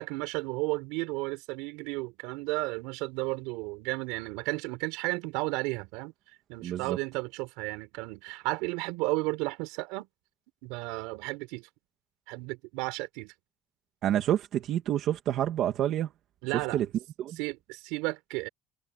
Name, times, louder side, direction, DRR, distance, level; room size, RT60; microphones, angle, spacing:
voice 1, 0.0-6.1 6.5-10.1 10.6-11.7 12.3-13.3 16.4-16.8 17.3-18.5, right 24 dB, 90° right, 4.7 m, -33 dB
voice 2, 6.6-7.0 14.0-16.1 16.7-16.9 17.2-17.4, right 11 dB, 45° right, 2.2 m, -28 dB
cardioid pair, 170°, 0 cm